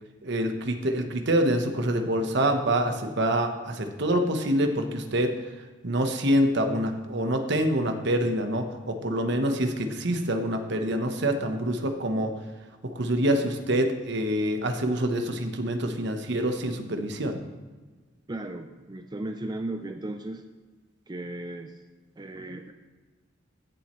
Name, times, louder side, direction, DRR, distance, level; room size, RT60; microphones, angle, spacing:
voice 1, 0.2-5.3 5.8-12.3 12.8-17.4, right 1 dB, 60° right, 6 dB, 1.1 m, -26 dB
voice 2, 18.3-20.4 21.1-21.8 22.2-22.7, right 1 dB, 20° right, 5 dB, 0.5 m, -36 dB
16.0 x 7.5 x 3.1 m, 1.3 s
head